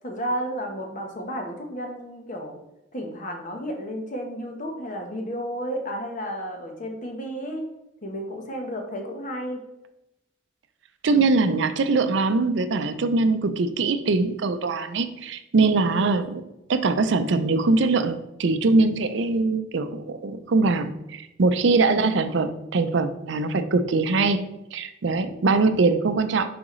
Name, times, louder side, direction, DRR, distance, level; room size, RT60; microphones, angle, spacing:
voice 1, 0.0-2.6 2.9-7.6 8.0-9.6 15.9-16.3 21.9-22.2, equal, 40° left, 2 dB, 1.1 m, -32 dB
voice 2, 11.0-16.4 16.7-24.4 24.7-26.5, right 3 dB, 60° right, 10 dB, 0.5 m, -22 dB
6.1 x 5.0 x 3.1 m, 0.90 s
head